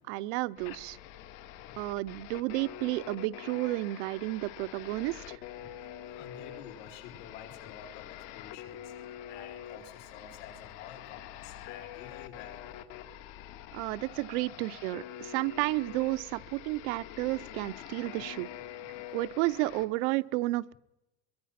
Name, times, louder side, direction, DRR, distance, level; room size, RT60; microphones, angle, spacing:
voice 1, 0.1-1.0 1.8-5.4 13.7-18.5 19.1-20.7, right 20 dB, 75° right, 16 dB, 0.8 m, -32 dB
sound 1, 0.6-19.9, left 11 dB, 70° left, 2.1 m, -45 dB
voice 2, 6.1-8.0 8.3-8.8 9.3-11.2 11.6-12.8, left 9 dB, 85° left, 4 dB, 5.3 m, -49 dB
23.5 x 23.0 x 5.9 m, 0.94 s
cardioid pair, 160°, 35 cm